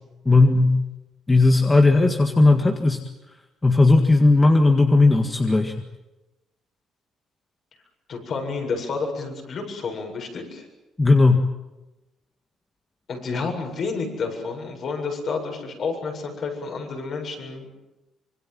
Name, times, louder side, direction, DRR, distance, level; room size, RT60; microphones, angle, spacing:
voice 1, 0.3-0.8 1.3-3.0 3.6-5.7 11.0-11.5, left 2 dB, 20° left, 4 dB, 1.9 m, -16 dB
voice 2, 8.1-10.7 13.1-17.7, left 4 dB, 55° left, 2 dB, 7.9 m, -30 dB
25.5 x 24.0 x 7.7 m, 1.0 s
cardioid pair, 110°, 0 cm